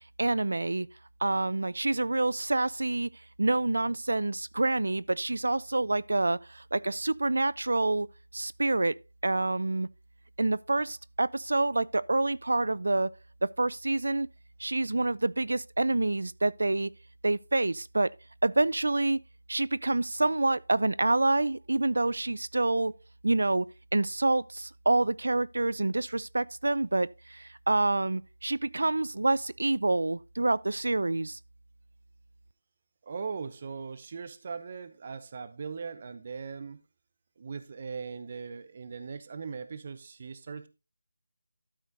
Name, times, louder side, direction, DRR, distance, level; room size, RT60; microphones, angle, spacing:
voice 1, 0.2-0.9 1.2-3.1 3.4-8.1 8.3-9.0 9.2-9.9 10.4-13.1 13.4-14.3 14.6-16.9 17.2-18.1 18.4-19.2 19.5-23.0 23.2-23.7 23.9-31.4, right 2 dB, 80° right, 0.5 m, -27 dB
voice 2, 33.0-36.8 37.4-40.7, right 5 dB, 40° right, 0.8 m, -39 dB
12.5 x 5.0 x 3.9 m
figure-of-eight pair, 165°, 0 cm